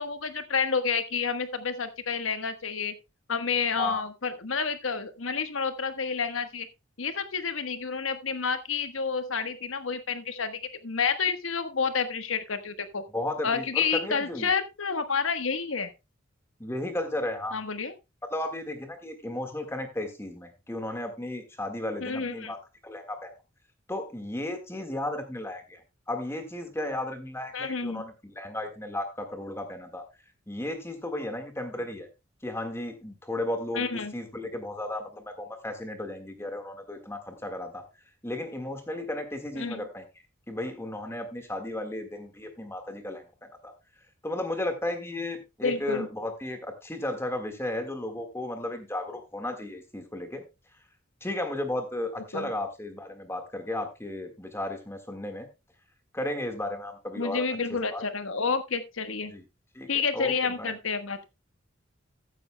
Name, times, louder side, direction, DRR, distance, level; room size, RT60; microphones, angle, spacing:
voice 1, 0.0-2.9 3.3-6.7 7.0-13.0 13.4-15.9 17.5-17.9 22.0-22.5 27.5-28.0 33.7-34.1 39.5-39.9 45.6-46.1 52.3-52.5 57.2-59.3 59.9-61.2, left 5 dB, 85° left, 10 dB, 1.2 m, -29 dB
voice 2, 13.1-14.5 16.6-17.6 18.3-22.6 22.8-23.3 23.9-25.8 26.1-30.0 30.5-32.1 32.4-37.8 38.2-40.0 40.5-43.2 43.6-43.7 44.2-50.4 51.2-55.5 56.1-57.4 57.7-58.0 59.3-59.4 59.7-60.7, left 1 dB, 15° left, 6 dB, 1.6 m, -34 dB
14.5 x 9.7 x 2.2 m, 0.25 s
head